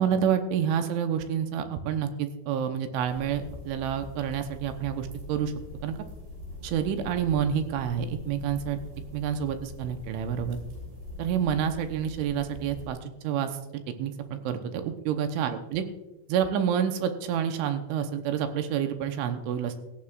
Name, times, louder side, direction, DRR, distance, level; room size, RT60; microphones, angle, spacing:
voice 1, 0.0-5.5 5.8-6.0 6.6-8.8 9.1-10.6 11.2-15.8 16.3-19.8, right 8 dB, 85° right, 7 dB, 3.2 m, -28 dB
sound 1, 3.0-12.9, left 2 dB, 50° right, 5.1 m, -43 dB
17.0 x 14.5 x 2.4 m, 1.0 s
omnidirectional pair, 5.6 m